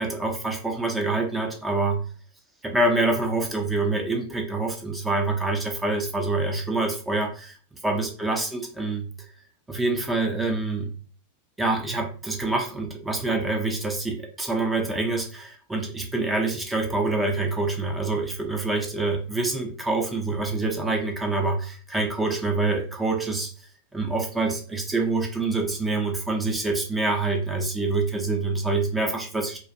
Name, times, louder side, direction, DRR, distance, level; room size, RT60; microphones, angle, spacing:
voice 1, 0.0-2.0 2.6-7.6 7.8-9.1 9.7-10.9 11.6-29.6, right 3 dB, 10° right, 2 dB, 0.5 m, -26 dB
2.3 x 2.2 x 2.6 m, 0.40 s
figure-of-eight pair, 90°, 0 cm